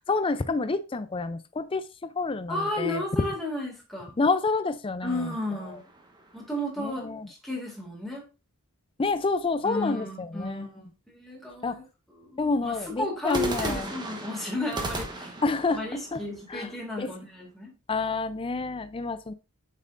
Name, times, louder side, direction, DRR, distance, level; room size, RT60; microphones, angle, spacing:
voice 1, 0.1-3.0 4.2-5.4 5.7-5.8 6.8-7.3 9.0-10.7 11.6-11.8 12.4-13.9 15.4-16.2 16.5-17.1 17.9-19.3, left 3 dB, 25° left, 0.4 m, -29 dB
voice 2, 2.5-4.1 5.0-5.8 6.3-8.2 9.6-11.8 12.2-15.4 15.7-17.7, left 1 dB, ahead, 2.2 m, -33 dB
sound 1, 5.0-6.5 13.3-17.2, right 2 dB, 20° right, 1.1 m, -37 dB
7.4 x 5.5 x 2.5 m
head